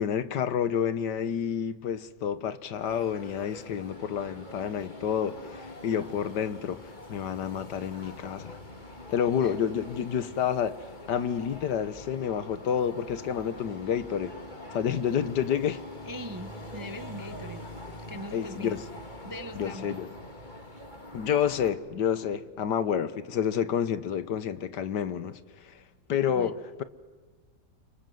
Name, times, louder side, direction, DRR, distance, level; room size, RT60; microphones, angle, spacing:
voice 1, 0.0-8.6 9.1-14.3 14.7-15.8 18.3-18.8 19.6-20.1 21.1-25.8 26.1-26.8, left 8 dB, 75° left, 1.7 m, -29 dB
sound 1, 2.7-21.7, left 1 dB, 25° left, 2.6 m, -44 dB
voice 2, 16.0-17.6 18.1-18.8 19.2-19.9 26.3-26.5, equal, 20° right, 0.6 m, -41 dB
29.5 x 26.0 x 7.8 m
omnidirectional pair, 1.9 m